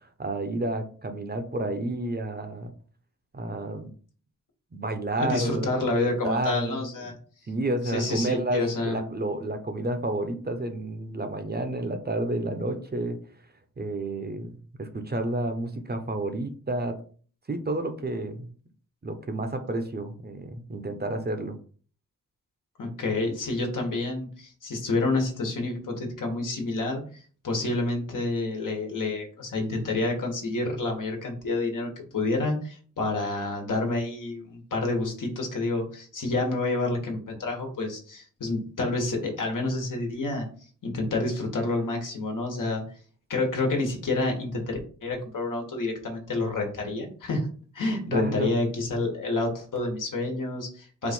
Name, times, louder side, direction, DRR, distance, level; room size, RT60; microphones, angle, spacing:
voice 1, 0.0-2.7 3.3-3.9 4.7-5.7 6.2-6.9 7.5-13.2 13.8-17.0 17.5-18.5 19.0-21.6 48.1-48.5, right 2 dB, 30° right, 7 dB, 0.7 m, -30 dB
voice 2, 5.2-7.1 7.8-9.0 22.8-27.0 27.4-40.5 40.8-42.8 43.3-47.5 47.7-51.1, left 2 dB, 75° left, 1 dB, 1.4 m, -28 dB
4.5 x 2.5 x 4.3 m, 0.42 s
cardioid pair, 75°, 32 cm